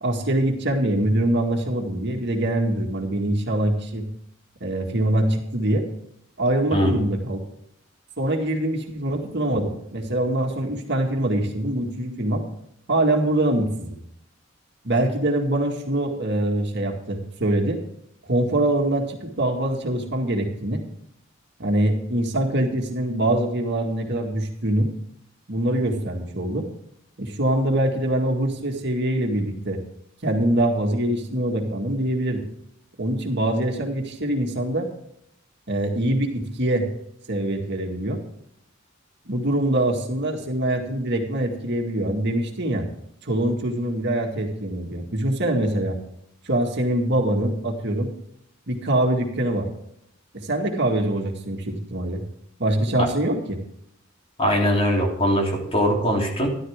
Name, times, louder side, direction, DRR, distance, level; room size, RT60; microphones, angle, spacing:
voice 1, 0.0-4.1 4.6-5.9 6.4-7.4 8.2-12.4 12.9-14.0 14.8-17.8 18.3-20.8 21.6-24.9 25.5-26.7 27.2-29.8 30.2-32.4 33.0-34.9 35.7-36.9 37.3-38.2 39.3-42.9 43.2-46.0 46.5-48.1 48.7-49.7 50.3-52.2 52.6-53.6, right 1 dB, 55° right, 2 dB, 2.0 m, -24 dB
voice 2, 54.4-56.5, equal, 30° left, -1 dB, 3.4 m, -21 dB
13.5 x 12.0 x 3.6 m, 0.75 s
head